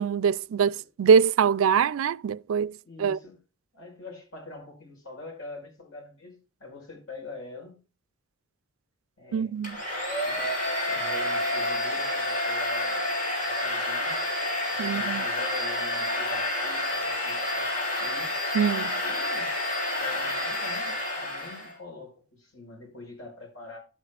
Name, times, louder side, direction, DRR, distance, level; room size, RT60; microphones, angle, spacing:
voice 1, 0.0-3.2 9.3-9.8 14.8-15.2 18.5-19.0, right 6 dB, 80° right, 0.4 m, -23 dB
voice 2, 2.8-3.4 3.7-7.8 9.2-9.5 10.2-10.6 10.9-13.1 13.4-14.2 14.7-17.7 18.0-18.3 19.0-19.5 20.0-23.8, left 3 dB, 75° left, 5.1 m, -44 dB
Domestic sounds home sounds, 9.6-21.7, left 1 dB, 40° left, 3.7 m, -29 dB
11.5 x 8.1 x 2.4 m
head